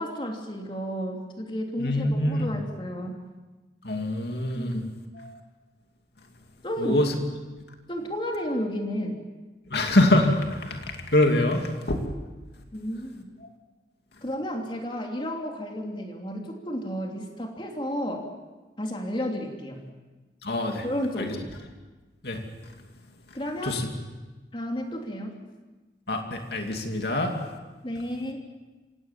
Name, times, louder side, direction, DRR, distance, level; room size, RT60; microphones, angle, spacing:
voice 1, 0.0-3.2 4.5-4.9 6.6-7.0 7.9-9.2 12.7-13.3 14.2-18.3 18.8-19.8 20.8-21.5 23.3-23.8 24.5-25.4 27.8-28.4, equal, 30° left, 1 dB, 3.1 m, -32 dB
voice 2, 1.8-2.5 3.8-4.8 5.1-5.4 6.8-7.1 9.7-12.0 20.4-20.8 21.2-21.3 22.2-22.4 23.6-23.9 26.1-27.3, left 1 dB, 65° left, 3 dB, 2.7 m, -25 dB
27.0 x 17.0 x 7.5 m, 1.2 s
head